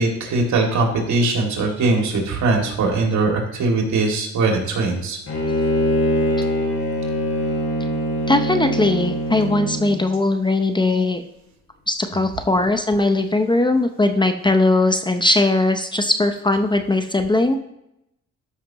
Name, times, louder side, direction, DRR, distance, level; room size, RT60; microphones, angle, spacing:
voice 1, 0.0-5.2, right 3 dB, 70° right, 1 dB, 2.4 m, -20 dB
Bowed string instrument, 5.3-10.0, equal, 50° left, 2.8 m, -23 dB
voice 2, 8.3-11.2 11.9-17.6, left 2 dB, 15° left, 7 dB, 0.6 m, -19 dB
13.0 x 5.8 x 2.9 m, 0.84 s
cardioid pair, 90°, 30 cm